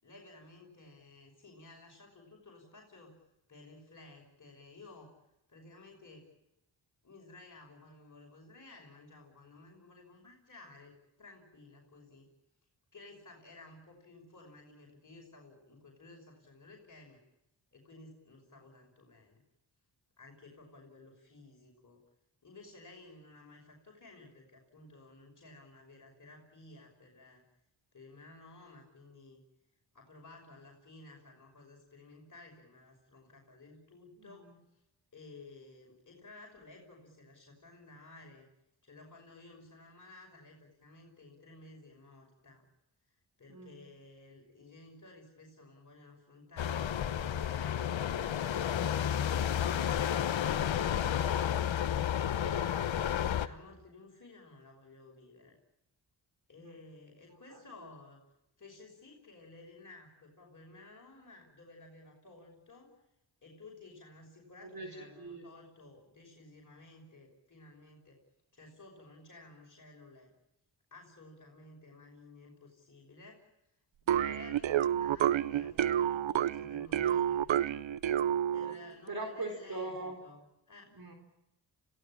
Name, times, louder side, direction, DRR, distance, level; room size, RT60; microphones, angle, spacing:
voice 1, 0.0-3.2 3.5-5.1 5.5-6.2 7.0-12.3 12.9-17.2 17.7-19.4 20.2-22.0 22.4-27.4 27.9-29.4 29.9-34.8 35.1-38.5 38.8-42.7 43.4-46.8 47.1-48.7 49.9-55.6 56.5-58.2 58.6-63.0 63.4-68.2 68.5-70.3 70.9-73.5 74.0-77.5 78.5-80.9, left 2 dB, 40° left, 0 dB, 5.9 m, -55 dB
voice 2, 34.2-34.5 43.5-43.8 56.6-56.7 64.7-65.6 79.1-80.2 80.9-81.1, right 2 dB, 50° right, 4 dB, 4.4 m, -41 dB
sound 1, 46.6-53.5, left 9 dB, 75° left, 1.2 m, -31 dB
sound 2, 74.1-78.9, right 10 dB, 80° right, 0.8 m, -29 dB
26.5 x 17.0 x 8.8 m, 0.90 s
cardioid pair, 65°, 46 cm